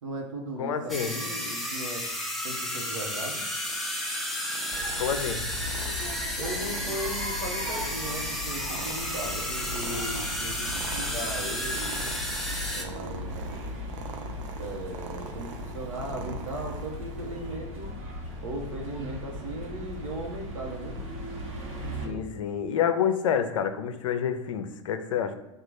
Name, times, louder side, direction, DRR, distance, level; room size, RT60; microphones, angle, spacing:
voice 1, 0.0-2.0 2.4-3.4 6.4-12.1 12.7-13.6 14.6-17.9 18.4-21.0 22.0-22.4, right 1 dB, 90° right, 1 dB, 1.0 m, -37 dB
voice 2, 0.6-1.2 5.0-5.5 22.0-25.3, left 8 dB, 80° left, 9 dB, 0.5 m, -28 dB
sound 1, 0.9-12.8, left 1 dB, ahead, 0.6 m, -32 dB
Purr, 3.6-17.6, right 5 dB, 70° right, 0.6 m, -44 dB
sound 2, 4.7-22.1, left 1 dB, 40° right, 1.1 m, -38 dB
3.9 x 2.4 x 4.7 m, 0.97 s
hypercardioid pair, 110°, 16 cm